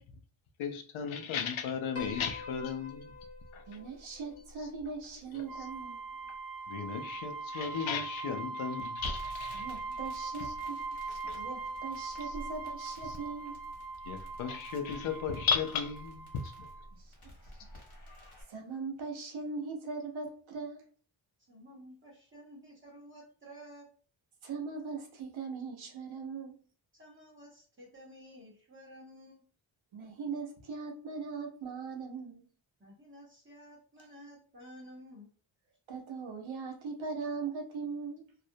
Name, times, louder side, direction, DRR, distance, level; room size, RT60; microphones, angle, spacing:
voice 1, 0.6-3.1 3.5-3.6 5.3-5.5 6.7-10.0 10.4-10.5 11.3-11.4 12.2-12.3 13.0-13.2 14.1-16.7, left 6 dB, 80° left, 0.6 m, -35 dB
Piano, 2.0-6.4, left 4 dB, 35° left, 0.5 m, -48 dB
voice 2, 3.7-6.0 9.5-13.6 18.5-20.8 24.4-26.6 29.9-32.5 35.9-38.3, right 4 dB, 75° right, 0.8 m, -40 dB
sound 1, 5.5-16.9, right 3 dB, 45° right, 0.5 m, -41 dB
Crackle, 9.0-18.4, left 1 dB, 50° left, 1.1 m, -49 dB
voice 3, 21.5-23.9 26.9-29.4 32.8-35.3, equal, 25° right, 0.9 m, -52 dB
2.4 x 2.0 x 2.7 m
wide cardioid pair, 140°, 47 cm